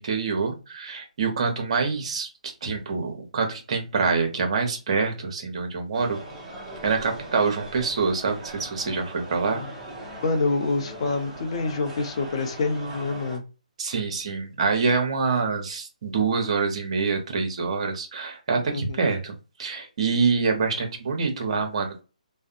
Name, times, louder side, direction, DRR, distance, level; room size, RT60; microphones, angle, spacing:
voice 1, 0.0-6.2 6.8-9.6 13.8-19.3 19.6-22.0, right 4 dB, 50° right, 0.8 m, -26 dB
sound 1, 5.9-13.4, right 1 dB, 10° right, 0.8 m, -40 dB
voice 2, 10.2-13.4 18.7-19.0, left 3 dB, 45° left, 0.6 m, -27 dB
2.6 x 2.1 x 2.5 m
figure-of-eight pair, 150°, 4 cm